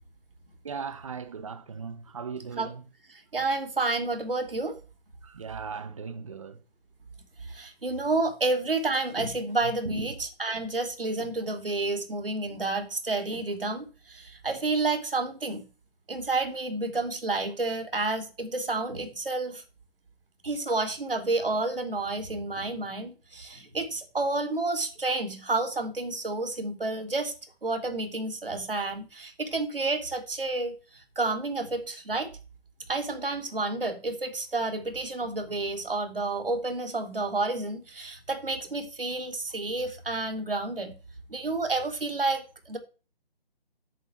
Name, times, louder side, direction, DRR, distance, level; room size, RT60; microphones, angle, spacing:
voice 1, 0.6-2.8 5.2-6.6 9.8-10.1, right 5 dB, 30° right, 1.3 m, -37 dB
voice 2, 3.3-4.8 7.5-15.6 16.1-19.6 20.4-27.3 27.6-32.3 32.9-40.9 41.3-42.8, right 3 dB, 60° right, 3.4 m, -30 dB
11.0 x 9.1 x 4.6 m
figure-of-eight pair, 150°, 31 cm